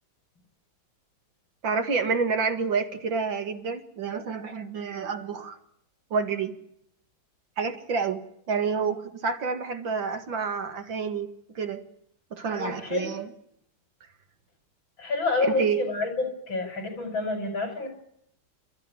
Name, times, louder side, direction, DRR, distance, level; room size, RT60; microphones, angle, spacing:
voice 1, 1.6-5.6 6.1-6.6 7.6-8.2 8.5-11.3 11.6-11.8 12.3-13.2 15.6-15.8, right 5 dB, 65° right, 7 dB, 2.6 m, -28 dB
voice 2, 12.6-13.1 15.0-17.9, left 3 dB, 65° left, 5 dB, 6.3 m, -28 dB
29.5 x 13.5 x 9.8 m, 0.76 s
omnidirectional pair, 2.3 m